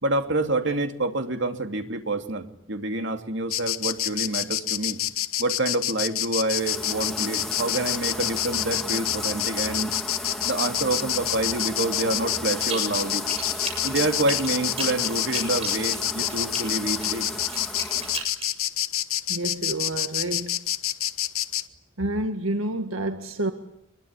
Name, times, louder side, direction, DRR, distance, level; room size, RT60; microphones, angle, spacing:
voice 1, 0.0-5.0 5.4-9.9 10.4-13.2 13.8-17.3 18.0-18.1, right 2 dB, 60° right, 6 dB, 2.8 m, -27 dB
Insect, 3.5-21.6, left 13 dB, 90° left, 1.4 m, -27 dB
sound 1, 6.5-18.3, left 1 dB, ahead, 2.6 m, -35 dB
sound 2, 12.6-13.0 13.3-16.6 17.0-18.5, right 5 dB, 30° right, 7.3 m, -35 dB
voice 2, 19.3-20.6 22.0-23.5, right 1 dB, 80° right, 7 dB, 1.8 m, -29 dB
24.5 x 22.5 x 9.9 m, 0.84 s
head